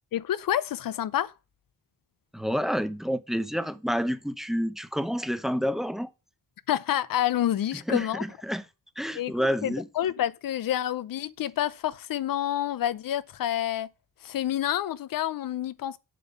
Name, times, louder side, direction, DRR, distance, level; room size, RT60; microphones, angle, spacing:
voice 1, 0.1-1.3 6.7-8.2 9.2-13.9 14.2-16.0, left 11 dB, 75° left, 0.6 m, -28 dB
voice 2, 2.3-6.1 7.9-8.6 9.0-9.9, equal, ahead, 0.6 m, -29 dB
7.6 x 5.5 x 5.2 m
wide cardioid pair, 150°, 34 cm